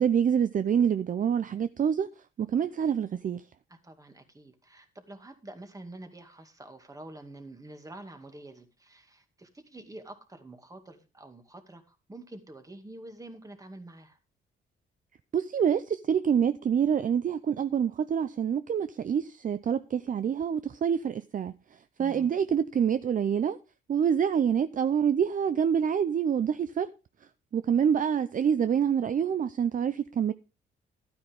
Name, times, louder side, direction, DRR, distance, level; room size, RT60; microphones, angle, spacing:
voice 1, 0.0-2.1 2.4-3.4 15.3-21.5 22.0-23.6 23.9-26.9 27.5-30.3, right 8 dB, 40° right, 0.6 m, -26 dB
voice 2, 3.8-14.2 22.0-22.3, right 2 dB, 15° right, 2.3 m, -47 dB
12.5 x 9.6 x 3.6 m
cardioid pair, 90°, 20 cm